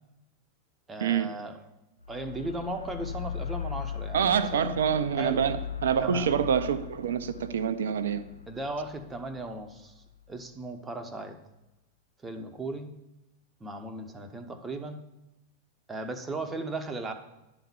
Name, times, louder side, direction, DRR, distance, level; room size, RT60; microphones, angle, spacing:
voice 1, 0.9-1.6 2.1-4.8 5.2-5.4 6.0-6.3 8.5-11.4 12.2-12.9 13.6-15.0 15.9-17.1, right 2 dB, 15° right, 5 dB, 0.9 m, -37 dB
sound 1, 2.0-10.3, left 7 dB, 80° left, 0.6 m, -39 dB
voice 2, 4.1-8.2, right 7 dB, 65° right, 12 dB, 0.6 m, -26 dB
11.0 x 3.9 x 6.9 m, 0.94 s
figure-of-eight pair, 90°, 0 cm